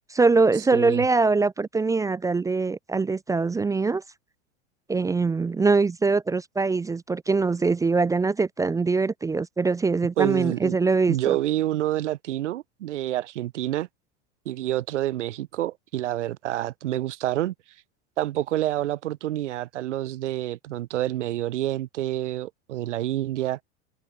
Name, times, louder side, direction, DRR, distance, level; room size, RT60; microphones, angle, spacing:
voice 1, 0.1-4.0 4.9-11.4, right 4 dB, 10° right, 0.4 m, -23 dB
voice 2, 0.7-1.0 10.2-10.8 11.1-13.9 14.5-17.5 18.2-23.6, right 14 dB, 85° right, 4.3 m, -28 dB
supercardioid pair, 115°, 35 cm